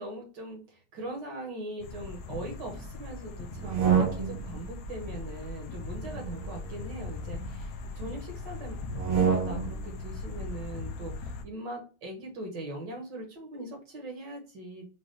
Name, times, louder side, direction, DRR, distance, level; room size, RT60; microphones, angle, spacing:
voice 1, 0.0-8.8 9.1-14.9, right 1 dB, 55° right, 1 dB, 1.8 m, -41 dB
sound 1, 1.8-11.4, left 3 dB, 75° left, 0.9 m, -39 dB
sound 2, 3.5-4.6 5.9-7.5 8.9-9.9, right 7 dB, 85° right, 1.9 m, -29 dB
5.2 x 2.4 x 3.3 m, 0.34 s
omnidirectional pair, 2.4 m